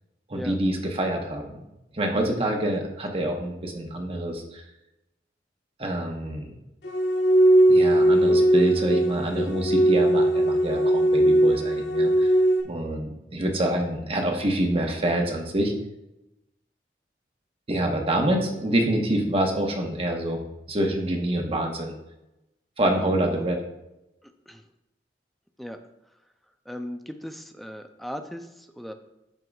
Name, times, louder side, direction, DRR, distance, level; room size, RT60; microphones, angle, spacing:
voice 1, 0.3-1.6 1.9-4.6 5.8-6.5 7.7-12.3 12.6-15.7 17.7-20.4 20.7-21.9 22.8-23.6, right 1 dB, 35° right, 2 dB, 1.1 m, -26 dB
sound 1, 6.8-12.6, right 1 dB, 75° left, 1.2 m, -19 dB
voice 2, 22.8-23.4 24.2-24.7 25.6-25.8 26.7-28.9, equal, ahead, 6 dB, 0.5 m, -38 dB
12.5 x 4.7 x 2.4 m, 0.91 s
head